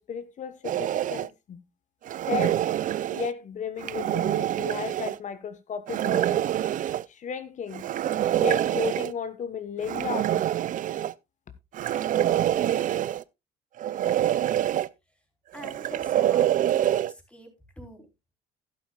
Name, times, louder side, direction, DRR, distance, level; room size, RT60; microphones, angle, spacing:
voice 1, 0.0-1.6 2.3-2.6 3.1-6.4 7.1-7.8 8.4-10.4, left 7 dB, 45° left, 1.2 m, -34 dB
sound 1, 0.6-1.3 2.1-3.3 3.8-5.2 5.9-7.0 7.7-9.1 9.8-11.1 11.7-13.2 13.8-14.9 15.6-17.1, right 12 dB, 50° right, 0.5 m, -26 dB
voice 2, 15.5-17.5 17.8-18.1, left 1 dB, 5° left, 3.9 m, -45 dB
12.0 x 11.5 x 2.4 m
cardioid pair, 110°, 17 cm